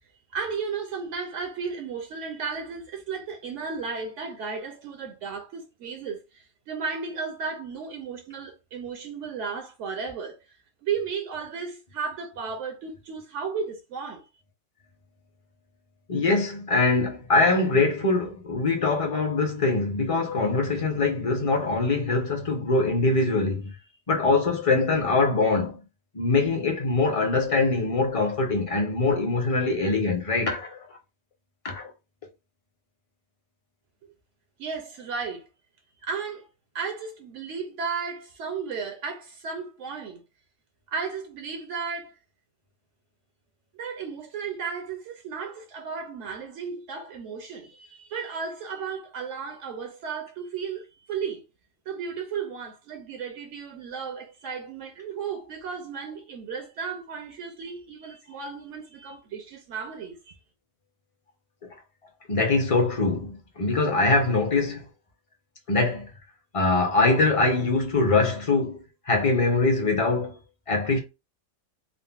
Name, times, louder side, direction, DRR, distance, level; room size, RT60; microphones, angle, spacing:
voice 1, 0.3-10.6 10.8-14.2 34.6-35.5 36.0-36.5 36.7-40.2 40.9-42.2 43.7-51.4 51.9-60.4, right 5 dB, 75° right, 0.9 m, -34 dB
voice 2, 16.1-23.7 24.1-25.8 26.1-30.8 31.6-31.9 61.6-61.7 62.3-64.9 65.7-66.1 66.5-70.4 70.7-71.0, left 3 dB, 35° left, 0.6 m, -23 dB
3.7 x 2.0 x 2.3 m
omnidirectional pair, 1.3 m